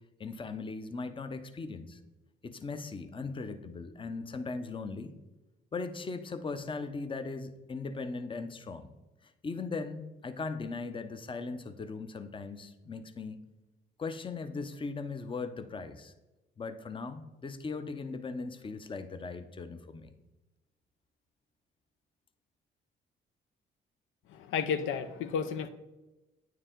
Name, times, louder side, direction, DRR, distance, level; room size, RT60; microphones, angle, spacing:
voice 1, 0.2-2.0 2.4-5.1 5.7-8.9 9.2-13.4 14.0-16.1 16.6-20.1, left 4 dB, 25° left, 0.6 m, -39 dB
voice 2, 24.3-25.7, left 6 dB, 85° left, 0.5 m, -32 dB
9.0 x 4.7 x 3.7 m
cardioid pair, 90°, 20 cm